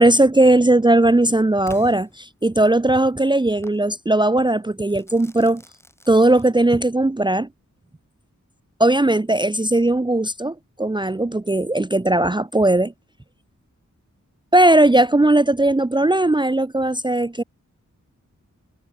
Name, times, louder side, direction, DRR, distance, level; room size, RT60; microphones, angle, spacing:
voice 1, 0.0-5.6 6.1-7.5 8.8-12.9 14.5-17.4, right 1 dB, 15° right, 0.7 m, -18 dB
Crackle / Fireworks, 1.7-2.8 3.6-3.9 4.9-6.9, left 1 dB, 10° left, 4.4 m, -47 dB
wide cardioid pair, 90°, 31 cm